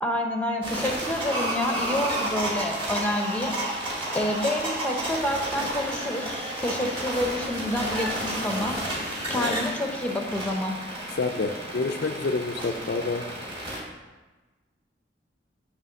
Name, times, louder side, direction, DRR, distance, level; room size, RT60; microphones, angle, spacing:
voice 1, 0.0-3.5 4.1-8.8 9.3-10.8, left 1 dB, 5° left, 3 dB, 0.7 m, -28 dB
sound 1, 0.6-13.8, right 1 dB, 25° right, 2.1 m, -31 dB
voice 2, 11.2-13.3, left 3 dB, 55° left, 6 dB, 0.4 m, -28 dB
9.0 x 3.2 x 6.6 m, 1.2 s
head